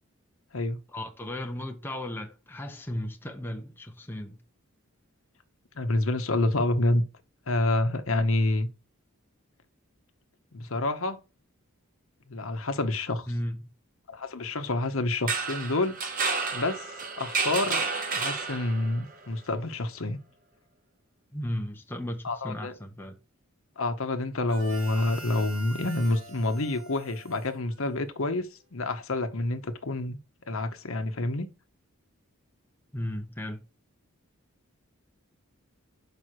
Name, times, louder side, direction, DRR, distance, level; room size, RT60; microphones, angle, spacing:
voice 1, 0.9-4.4 13.3-13.6 21.3-23.2 32.9-33.6, left 1 dB, 10° left, 0.8 m, -35 dB
voice 2, 5.8-7.0 7.5-8.7 10.5-11.2 12.3-13.3 14.1-16.1 16.5-17.8 18.1-20.2 22.2-22.7 23.8-30.2 30.5-31.5, left 2 dB, 70° left, 1.0 m, -28 dB
sound 1, 15.1-19.0, right 4 dB, 40° right, 1.0 m, -30 dB
Harmonica, 24.5-28.3, right 2 dB, 65° right, 2.4 m, -45 dB
6.3 x 5.3 x 4.6 m
head